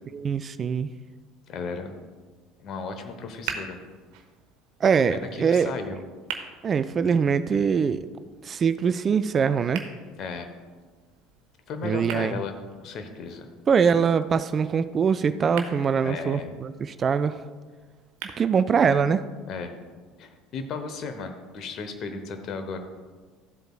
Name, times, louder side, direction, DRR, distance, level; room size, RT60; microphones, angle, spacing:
voice 1, 0.1-0.9 4.8-5.7 6.6-8.1 8.4-9.8 11.8-12.3 13.7-17.4 18.4-19.2, right 6 dB, 35° right, 13 dB, 0.3 m, -23 dB
voice 2, 1.5-2.0 2.6-3.8 5.1-6.0 10.1-10.5 11.7-13.5 16.0-16.5 19.5-19.7 20.2-22.8, left 5 dB, 45° left, 7 dB, 1.0 m, -35 dB
sound 1, 3.0-19.0, right 7 dB, 60° right, 0.9 m, -44 dB
13.5 x 7.8 x 2.3 m, 1.5 s
figure-of-eight pair, 65°, 0 cm